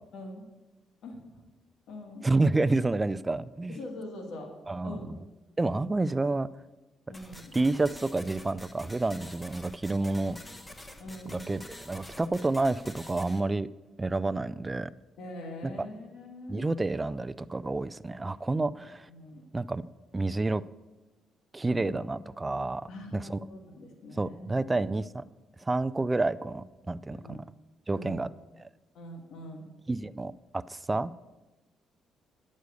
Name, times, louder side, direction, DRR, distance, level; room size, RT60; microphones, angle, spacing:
voice 1, 1.0-1.5 1.9-2.3 3.7-4.5 4.8-5.2 7.1-7.5 11.0-11.5 15.2-16.7 19.1-19.4 21.7-21.9 22.9-24.8 27.1-27.5 27.9-28.2 28.9-29.7, left 1 dB, 75° left, 2 dB, 2.0 m, -43 dB
voice 2, 2.2-3.8 4.7-5.2 5.6-6.5 7.5-10.4 11.3-13.7 14.0-14.9 15.8-15.9 16.5-19.1 19.5-19.8 20.1-20.6 21.5-23.4 24.1-25.2 25.6-27.4 27.9-28.3 28.6-28.7 29.9-31.1, right 2 dB, 20° right, 16 dB, 0.4 m, -29 dB
sound 1, 7.1-13.4, left 1 dB, 15° left, 1.0 m, -47 dB
9.3 x 6.4 x 8.3 m, 1.1 s
cardioid pair, 90°, 0 cm